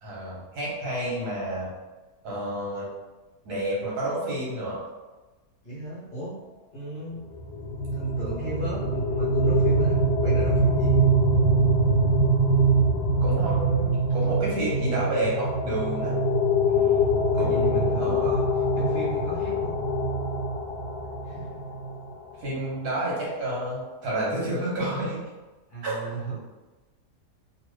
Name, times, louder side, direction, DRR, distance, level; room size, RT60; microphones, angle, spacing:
voice 1, 0.0-1.7 2.2-2.9 3.4-4.8 13.2-16.1 17.4-18.3 22.4-25.2 25.8-25.9, right 1 dB, 70° right, -5 dB, 1.5 m, -30 dB
voice 2, 5.6-6.4 6.7-7.2 7.9-11.0 16.6-18.4 18.8-19.7 21.2-21.6 25.7-26.4, right 2 dB, 40° left, -9 dB, 0.8 m, -35 dB
sound 1, 7.3-22.1, right 1 dB, 70° left, 1.0 m, -23 dB
3.1 x 2.6 x 3.1 m, 1.2 s
omnidirectional pair, 1.7 m